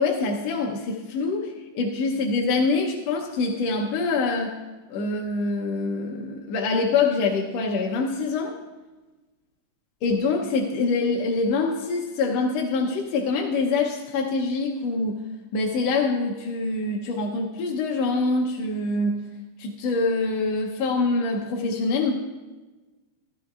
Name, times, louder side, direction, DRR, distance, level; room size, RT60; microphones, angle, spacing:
voice 1, 0.0-4.5 4.9-8.5 10.0-15.2 15.5-19.2 19.6-22.1, left 3 dB, 70° left, 0 dB, 1.6 m, -25 dB
17.0 x 14.0 x 2.4 m, 1.2 s
omnidirectional pair, 3.8 m